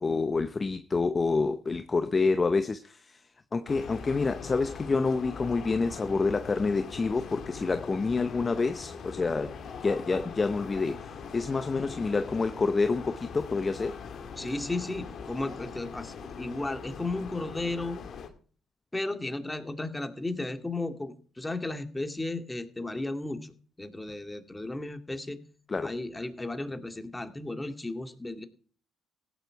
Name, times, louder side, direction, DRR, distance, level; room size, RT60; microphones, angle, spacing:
voice 1, 0.0-3.2 3.5-9.6 9.8-14.0 25.7-25.9, left 4 dB, 30° left, 0.8 m, -28 dB
sound 1, 3.7-18.3, left 6 dB, 55° left, 2.2 m, -42 dB
voice 2, 14.4-18.0 18.9-25.4 25.8-28.5, left 2 dB, 15° left, 2.2 m, -34 dB
16.5 x 9.4 x 4.7 m
hypercardioid pair, 60°, 0 cm